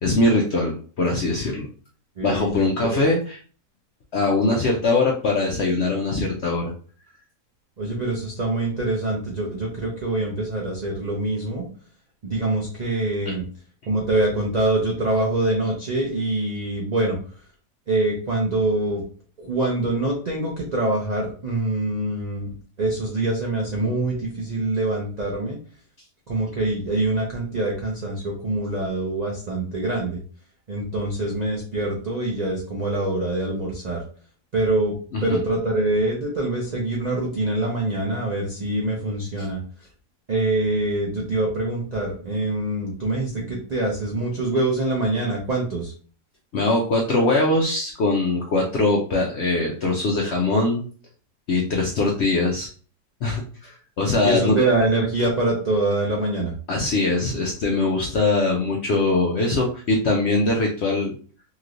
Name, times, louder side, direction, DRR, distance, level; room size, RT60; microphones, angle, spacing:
voice 1, 0.0-1.7 2.2-3.4 4.1-6.7 35.1-35.4 39.4-39.5 46.5-50.9 51.5-52.7 53.2-54.6 56.7-61.1, left 2 dB, 70° left, -1 dB, 0.6 m, -22 dB
voice 2, 2.2-3.0 7.8-11.6 12.2-13.5 13.9-17.2 17.9-19.0 19.4-22.5 22.8-25.6 26.3-30.2 30.7-34.0 34.5-34.9 35.2-39.6 40.3-45.9 54.2-56.5, right 2 dB, 65° right, -2 dB, 0.4 m, -24 dB
3.1 x 2.9 x 2.5 m, 0.41 s
omnidirectional pair, 1.7 m